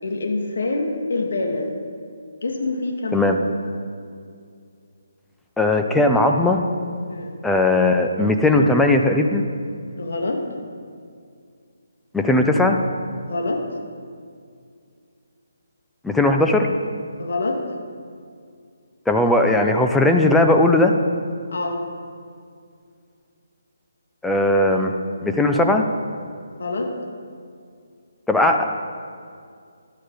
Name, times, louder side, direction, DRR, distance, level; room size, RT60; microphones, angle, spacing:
voice 1, 0.0-1.7 2.4-3.3 7.1-7.3 10.0-10.4 13.3-13.6 17.2-17.6 21.5-21.8 26.6-26.9, left 2 dB, 60° left, 2 dB, 2.3 m, -25 dB
voice 2, 5.6-6.6 7.4-9.4 12.1-12.8 16.0-16.7 19.1-20.9 24.2-24.9 25.2-25.9 28.3-28.6, left 2 dB, 5° left, 3 dB, 0.8 m, -18 dB
14.0 x 11.5 x 4.1 m, 2.3 s
figure-of-eight pair, 145°, 0 cm